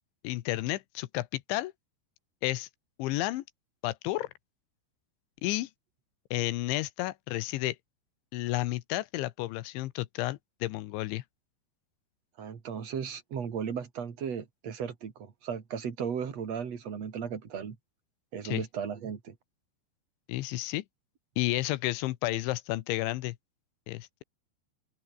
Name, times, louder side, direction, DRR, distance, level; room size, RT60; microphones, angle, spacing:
voice 1, 0.2-1.7 2.4-2.7 3.0-3.4 3.8-4.3 5.4-5.7 6.3-7.8 8.3-11.2 18.4-18.6 20.3-20.8 21.4-23.4 23.9-24.2, left 17 dB, 90° left, 3.3 m, -31 dB
voice 2, 12.4-17.8 18.3-19.4, right 7 dB, 40° right, 3.3 m, -36 dB
open air
omnidirectional pair, 5.4 m